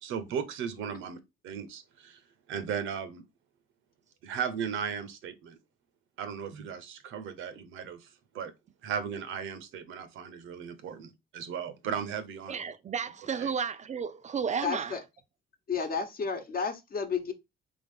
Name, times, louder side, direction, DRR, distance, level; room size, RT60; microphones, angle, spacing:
voice 1, 0.0-1.2 1.4-2.2 2.5-3.2 4.2-5.6 6.2-8.1 8.3-8.5 8.8-12.6 13.4-13.5, right 7 dB, 85° right, 0.7 m, -36 dB
voice 2, 12.5-15.0, right 6 dB, 35° right, 0.4 m, -32 dB
voice 3, 14.6-15.0 15.7-17.3, left 5 dB, 50° left, 1.0 m, -32 dB
3.7 x 3.5 x 3.4 m
cardioid pair, 90°, 20 cm